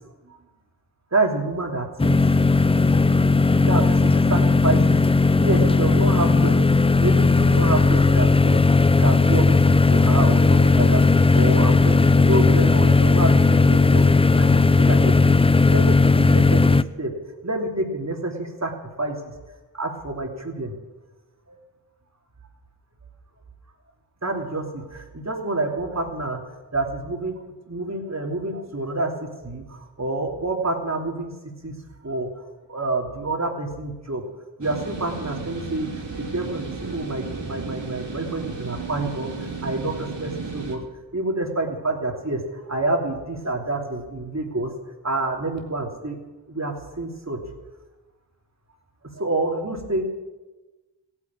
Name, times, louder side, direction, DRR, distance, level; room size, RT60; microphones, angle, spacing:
voice 1, 1.1-2.2 3.6-5.0 5.4-8.6 9.0-14.0 14.4-15.4 15.7-17.1 17.4-18.7 19.0-19.2 19.7-20.7 21.5-21.6 24.2-26.4 26.7-27.3 27.7-31.3 31.6-31.7 32.0-34.2 34.6-35.9 36.2-40.8 41.1-44.7 45.0-46.2 46.5-47.4 49.2-50.0, right 2 dB, 35° right, 1 dB, 3.1 m, -28 dB
sound 1, 2.0-16.8, left 3 dB, 15° left, 0.4 m, -16 dB
sound 2, 34.6-40.8, right 4 dB, 70° right, 3.1 m, -34 dB
15.5 x 9.8 x 8.9 m, 1.2 s
cardioid pair, 50°, 44 cm